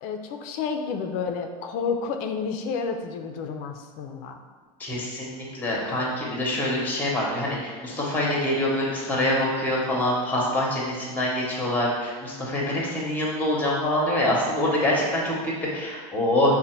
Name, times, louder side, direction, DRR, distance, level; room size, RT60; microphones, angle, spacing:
voice 1, 0.0-4.3, left 5 dB, 50° left, 5 dB, 0.4 m, -30 dB
voice 2, 4.8-16.6, left 1 dB, 10° left, -3 dB, 0.9 m, -25 dB
3.9 x 2.2 x 4.3 m, 1.5 s
supercardioid pair, 140°, 19 cm